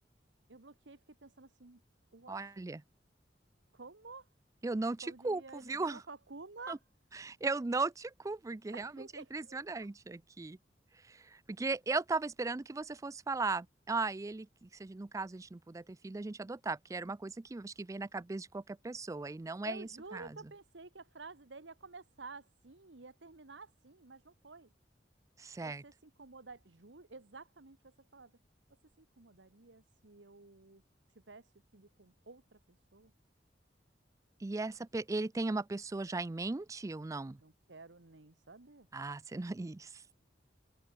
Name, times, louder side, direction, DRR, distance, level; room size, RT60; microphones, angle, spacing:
voice 1, 0.5-1.8 2.1-2.4 3.7-4.3 5.0-6.8 8.7-9.9 19.6-24.7 25.6-28.3 29.0-30.8 31.3-32.6 32.9-33.1 37.4-38.9, right 3 dB, 85° right, 1.5 m, -51 dB
voice 2, 2.3-2.8 4.6-6.0 6.7-6.8 7.1-10.6 11.1-20.4 25.4-25.8 34.4-37.4 38.9-40.0, right 3 dB, 20° right, 0.4 m, -37 dB
open air
head